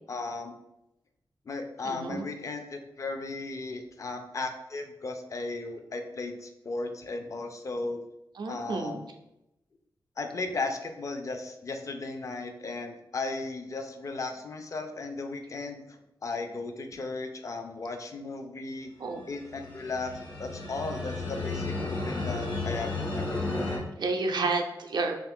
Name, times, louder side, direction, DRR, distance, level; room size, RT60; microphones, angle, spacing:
voice 1, 0.1-0.5 1.5-8.0 8.5-9.1 10.2-15.8 16.2-18.9 19.3-20.1 20.4-23.7, left 3 dB, 40° left, 5 dB, 0.4 m, -36 dB
voice 2, 1.8-2.2 8.3-9.0 19.0-19.2 24.0-25.2, right 3 dB, 65° right, 3 dB, 0.4 m, -30 dB
sound 1, 19.2-23.8, left 3 dB, 85° left, 0.8 m, -33 dB
2.5 x 2.4 x 3.5 m, 0.88 s
wide cardioid pair, 100°, 8 cm